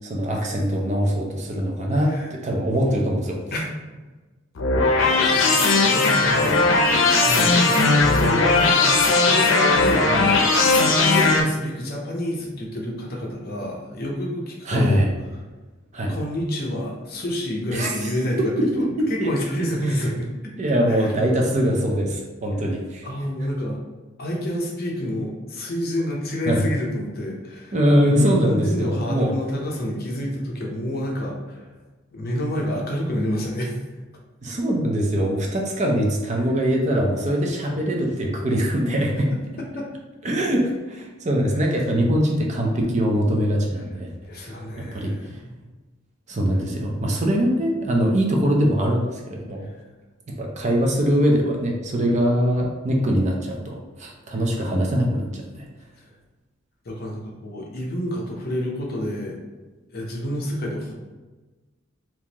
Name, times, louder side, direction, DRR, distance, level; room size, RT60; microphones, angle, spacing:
voice 1, 0.0-3.4 14.6-15.1 15.9-16.1 17.7-18.1 18.4-18.7 19.0-19.3 20.6-23.1 26.5-26.7 27.7-29.3 34.4-39.3 40.2-44.1 44.4-45.1 46.3-49.7 50.3-55.7, equal, 35° right, 0 dB, 0.6 m, -22 dB
sound 1, 4.6-11.4, left 3 dB, 90° left, 0.6 m, -18 dB
voice 2, 5.2-5.6 5.9-6.6 7.2-10.5 10.9-15.0 16.1-20.5 20.9-21.1 23.0-23.8 24.2-27.7 28.0-31.7 32.1-33.7 39.3-39.9 44.2-45.6 54.6-54.7 56.8-59.4 59.9-60.9, equal, 50° left, -1 dB, 0.7 m, -28 dB
3.6 x 2.9 x 2.9 m, 1.2 s
head